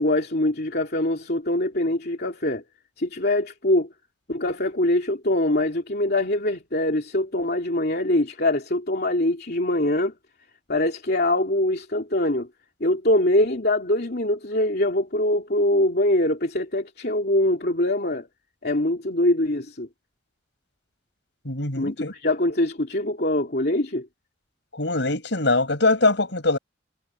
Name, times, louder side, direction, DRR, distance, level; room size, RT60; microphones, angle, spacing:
voice 1, 0.0-2.6 3.0-3.9 4.3-10.1 10.7-12.5 12.8-18.3 18.6-19.9 21.7-24.1, left 1 dB, 55° left, 3.0 m, -23 dB
voice 2, 21.4-22.1 24.7-26.6, left 2 dB, 75° left, 5.2 m, -22 dB
head